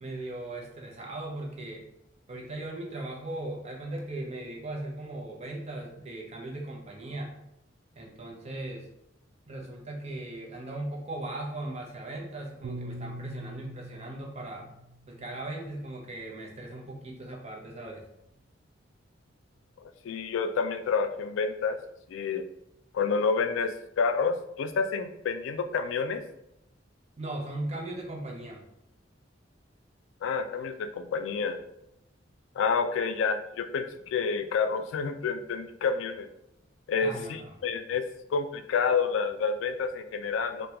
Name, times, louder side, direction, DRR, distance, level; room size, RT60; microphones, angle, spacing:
voice 1, 0.0-1.8 2.3-7.3 7.9-8.9 9.5-14.7 15.1-18.0 27.2-28.6 37.0-37.6, right 1 dB, 35° right, 0 dB, 0.6 m, -38 dB
Piano, 12.6-17.1, right 1 dB, 85° right, 0.3 m, -44 dB
voice 2, 19.8-21.8 22.1-22.4 22.9-26.2 30.2-31.6 32.6-36.3 36.9-38.0 38.3-40.7, left 5 dB, 85° left, 8 dB, 0.3 m, -29 dB
3.5 x 2.2 x 2.9 m, 0.80 s
head